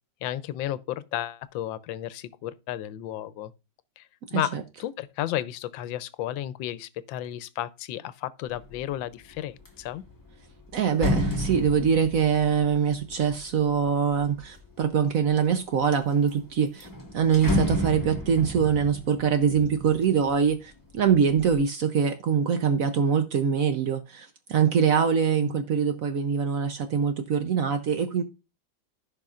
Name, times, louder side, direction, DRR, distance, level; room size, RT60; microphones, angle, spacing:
voice 1, 0.2-3.5 4.0-10.0 25.4-25.6, left 13 dB, 85° left, 1.4 m, -33 dB
voice 2, 4.3-4.6 10.7-16.9 17.1-28.2, right 7 dB, 65° right, 0.9 m, -24 dB
sound 1, 8.6-8.9 9.3-14.7 15.3-15.9 16.3-16.4 16.7-20.6 21.0-21.6, left 1 dB, 10° left, 1.5 m, -32 dB
14.5 x 5.4 x 2.4 m
omnidirectional pair, 2.0 m